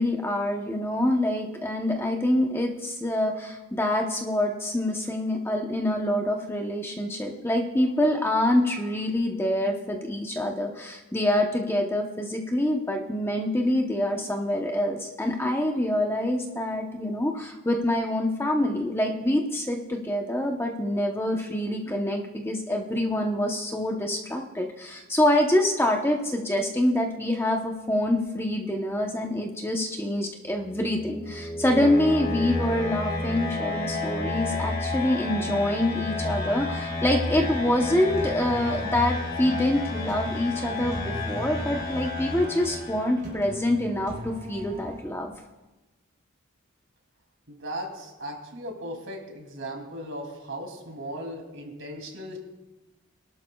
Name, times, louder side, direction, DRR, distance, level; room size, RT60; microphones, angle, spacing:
voice 1, 0.0-45.3, left 1 dB, 10° left, 2 dB, 0.8 m, -26 dB
sound 1, 30.5-43.4, left 2 dB, 50° left, 2.4 m, -31 dB
sound 2, 37.3-45.4, left 1 dB, 35° right, 3.6 m, -39 dB
voice 2, 47.5-52.4, equal, 65° right, 2 dB, 2.7 m, -37 dB
23.5 x 12.0 x 2.3 m, 1.1 s
head